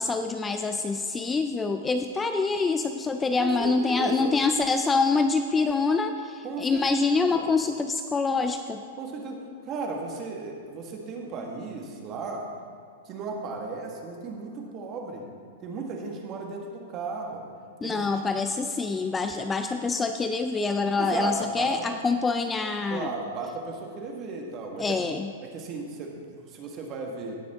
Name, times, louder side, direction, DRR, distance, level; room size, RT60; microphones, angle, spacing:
voice 1, 0.0-8.8 17.8-23.1 24.8-25.3, left 4 dB, 15° left, 7 dB, 0.3 m, -26 dB
voice 2, 3.4-4.3 6.4-7.4 9.0-12.4 13.0-15.3 15.6-17.4 17.8-18.2 21.0-21.9 22.9-25.0 25.4-27.4, right 3 dB, 30° right, 1 dB, 1.6 m, -35 dB
17.5 x 6.2 x 3.6 m, 2.2 s
hypercardioid pair, 145°, 0 cm